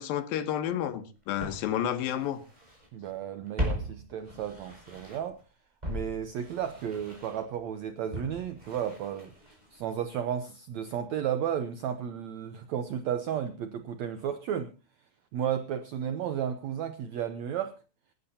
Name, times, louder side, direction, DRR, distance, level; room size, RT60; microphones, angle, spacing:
voice 1, 0.0-2.4, left 10 dB, 75° left, 2.7 m, -30 dB
Walk footsteps, 0.7-0.8 1.4-2.9 3.2-5.4 5.8-9.9 10.1-10.2, equal, 10° right, 5.8 m, -38 dB
voice 2, 2.9-5.4 5.9-9.3 9.7-14.7 15.3-17.8, right 9 dB, 80° right, 1.6 m, -33 dB
27.0 x 11.5 x 2.8 m
omnidirectional pair, 4.3 m